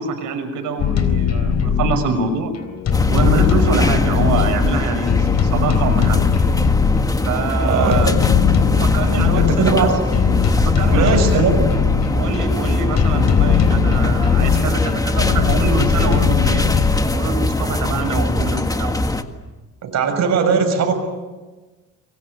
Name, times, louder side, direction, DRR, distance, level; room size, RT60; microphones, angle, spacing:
voice 1, 0.0-2.5 3.1-6.3 7.2-8.1 8.8-9.9 10.8-11.4 12.1-16.6 17.1-19.3, right 4 dB, 75° right, 6 dB, 6.2 m, -25 dB
sound 1, 0.8-17.0, left 7 dB, 60° left, 4.0 m, -19 dB
sound 2, 2.9-19.2, left 2 dB, 10° left, 1.8 m, -21 dB
voice 2, 7.6-8.2 9.3-10.0 10.9-11.7 19.8-20.9, right 5 dB, 60° right, 5 dB, 7.0 m, -19 dB
24.5 x 23.0 x 9.3 m, 1.2 s
cardioid pair, 105°, 30 cm